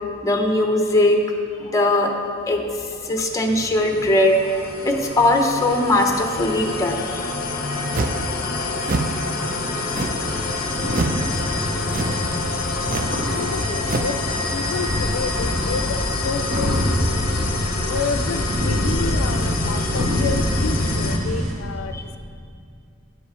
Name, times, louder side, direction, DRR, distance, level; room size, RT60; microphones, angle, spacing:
voice 1, 0.2-1.2 1.6-2.1 2.5-7.3 9.6-9.7 12.9-13.1 21.9-22.0, left 1 dB, 15° left, 3 dB, 0.8 m, -20 dB
sound 1, 3.2-21.2, left 3 dB, 45° left, 0.8 m, -27 dB
sound 2, 7.9-8.3 8.8-9.2 9.9-10.3 10.9-11.2 11.9-12.3 12.8-13.2 13.8-14.2, right 3 dB, 45° right, 0.5 m, -26 dB
sound 3, 10.2-21.5, equal, 65° right, 2.0 m, -26 dB
voice 2, 13.2-16.8 17.8-22.2, left 5 dB, 75° left, 9 dB, 0.4 m, -30 dB
11.0 x 5.4 x 5.6 m, 2.4 s
head